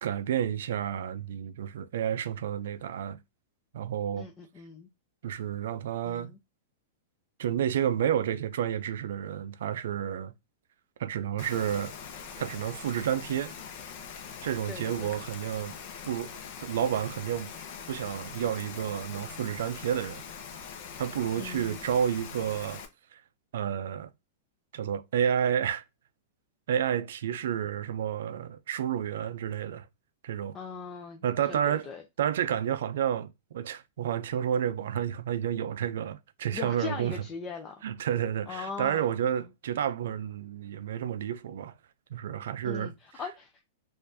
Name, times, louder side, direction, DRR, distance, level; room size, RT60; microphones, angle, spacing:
voice 1, 0.0-3.2 3.7-4.3 5.2-6.3 7.4-10.3 11.0-11.9 12.4-13.5 14.4-15.7 16.0-16.3 16.6-17.5 17.9-20.2 21.0-22.8 23.1-23.2 23.5-24.1 24.7-25.8 26.7-29.9 30.2-30.6 31.2-31.9 32.2-37.2 37.8-41.7 42.1-42.9, right 9 dB, 75° right, 0.4 m, -30 dB
voice 2, 4.2-4.9 6.0-6.4 14.7-15.3 21.4-21.9 30.5-32.0 36.5-37.8 38.5-39.0 42.6-43.6, left 5 dB, 20° left, 0.5 m, -40 dB
Rain, 11.4-22.9, left 6 dB, 50° left, 0.8 m, -43 dB
4.4 x 2.5 x 2.6 m
supercardioid pair, 145°, 0 cm